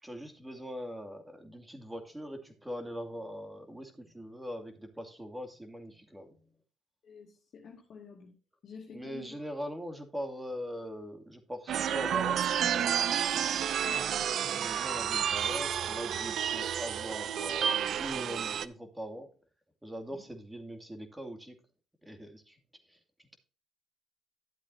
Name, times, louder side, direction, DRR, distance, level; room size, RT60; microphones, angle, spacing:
voice 1, 0.0-6.5 8.9-13.0 14.5-19.3 19.8-21.6 22.0-22.6 22.8-23.4, equal, 10° right, 7 dB, 2.5 m, -42 dB
voice 2, 7.0-8.3 8.6-9.5 13.8-14.1 20.1-20.2, left 6 dB, 55° left, -2 dB, 2.3 m, -49 dB
sound 1, 11.7-18.7, right 9 dB, 60° right, 0.6 m, -30 dB
12.0 x 8.0 x 2.7 m, 0.35 s
supercardioid pair, 70°, 0 cm